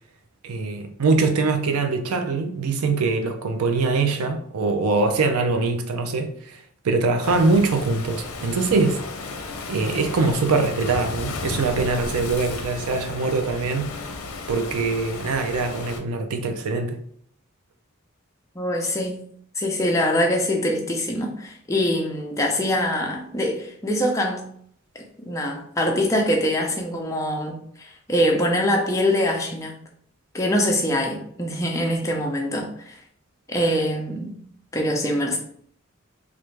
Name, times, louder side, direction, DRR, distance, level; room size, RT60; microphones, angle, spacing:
voice 1, 0.4-9.0 9.4-14.0 14.5-17.0, right 3 dB, 90° right, 0.5 m, -23 dB
Waves surf, 7.2-16.0, left 3 dB, 80° left, 0.5 m, -34 dB
voice 2, 18.6-19.2 19.6-24.4 25.2-29.7 30.3-33.0 33.5-34.3 34.7-35.4, left 1 dB, 15° left, 0.5 m, -24 dB
3.2 x 2.5 x 3.2 m
head